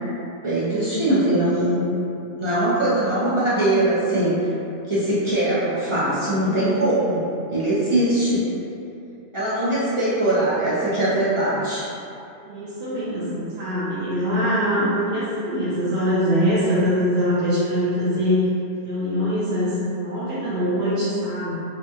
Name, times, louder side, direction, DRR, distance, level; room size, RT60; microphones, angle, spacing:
voice 1, 0.4-1.8 2.4-4.5 4.9-8.4 9.3-11.8, right 1 dB, 35° right, -11 dB, 0.6 m, -21 dB
voice 2, 12.4-18.5 18.8-21.5, equal, 80° right, -11 dB, 0.8 m, -23 dB
2.9 x 2.2 x 2.6 m, 2.7 s
omnidirectional pair, 1.1 m